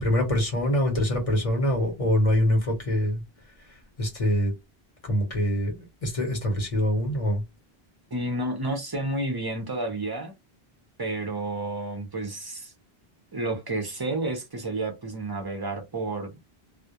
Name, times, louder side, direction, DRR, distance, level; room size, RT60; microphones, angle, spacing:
voice 1, 0.0-3.2 4.0-4.5 5.0-7.4, equal, 35° left, 0.8 m, -24 dB
voice 2, 8.1-10.3 11.0-12.7 13.3-16.4, right 2 dB, 30° right, 0.4 m, -30 dB
2.3 x 2.0 x 2.7 m
omnidirectional pair, 1.1 m